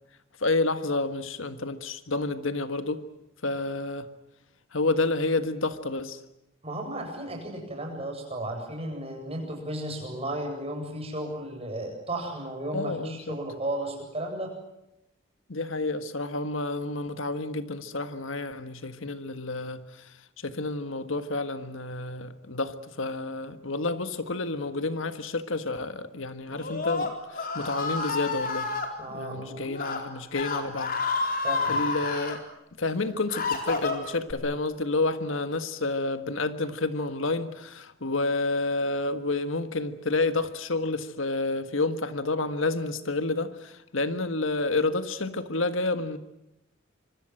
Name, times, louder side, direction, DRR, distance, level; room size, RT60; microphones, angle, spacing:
voice 1, 0.4-3.0 3.4-4.1 4.7-6.2 12.7-13.4 15.5-20.1 20.4-28.7 29.1-31.0 31.7-32.4 32.8-46.2, left 2 dB, 75° left, 1.6 m, -29 dB
voice 2, 6.6-14.5 29.0-29.7 31.4-31.8, right 1 dB, 30° right, 8.0 m, -34 dB
Screaming, 26.5-28.9 29.7-30.0 30.3-32.4 32.9-34.3, left 4 dB, 45° left, 4.2 m, -30 dB
26.0 x 25.0 x 7.8 m
head